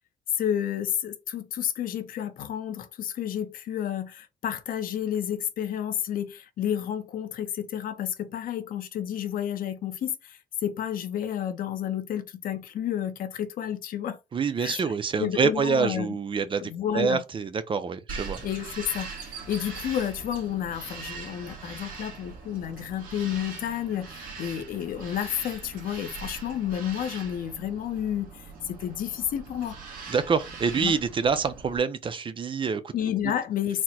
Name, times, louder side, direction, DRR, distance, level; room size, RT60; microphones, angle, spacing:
voice 1, 0.4-14.2 14.6-14.9 15.2-16.2 16.6-17.2 18.4-29.8 30.8-31.0 32.9-33.8, left 10 dB, 80° left, 0.7 m, -31 dB
voice 2, 14.3-18.4 30.1-32.9, right 5 dB, 35° right, 0.5 m, -26 dB
Bird vocalization bird call bird song, 18.1-31.8, right 4 dB, 80° right, 2.0 m, -41 dB
4.3 x 2.1 x 4.2 m
cardioid pair, 120°, 14 cm